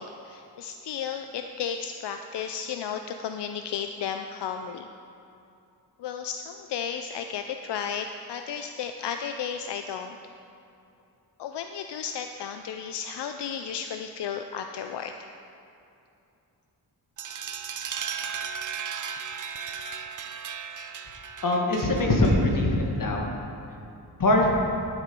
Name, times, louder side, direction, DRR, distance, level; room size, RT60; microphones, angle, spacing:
voice 1, 0.0-4.9 6.0-10.2 11.4-15.3, left 7 dB, 85° left, 6 dB, 0.5 m, -34 dB
sound 1, 17.2-22.7, right 7 dB, 50° right, 0.6 m, -36 dB
voice 2, 21.4-23.3 24.2-24.5, left 1 dB, 50° left, 0 dB, 1.6 m, -22 dB
11.5 x 7.4 x 5.3 m, 2.7 s
wide cardioid pair, 130°, 40 cm